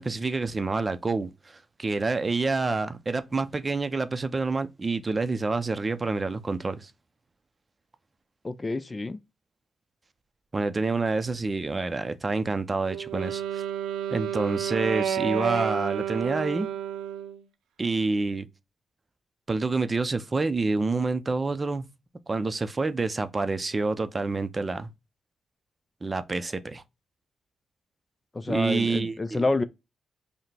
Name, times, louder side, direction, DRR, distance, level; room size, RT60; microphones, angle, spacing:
voice 1, 0.0-6.9 10.5-13.6 14.1-16.7 17.8-18.5 19.5-21.9 22.3-24.9 26.0-26.8 28.5-29.4, right 3 dB, 30° right, 0.6 m, -28 dB
voice 2, 8.4-9.2 28.3-29.6, left 2 dB, 25° left, 0.4 m, -28 dB
Wind instrument woodwind instrument, 12.9-17.4, right 9 dB, 85° right, 0.6 m, -30 dB
5.6 x 2.1 x 3.3 m
supercardioid pair, 60°, 0 cm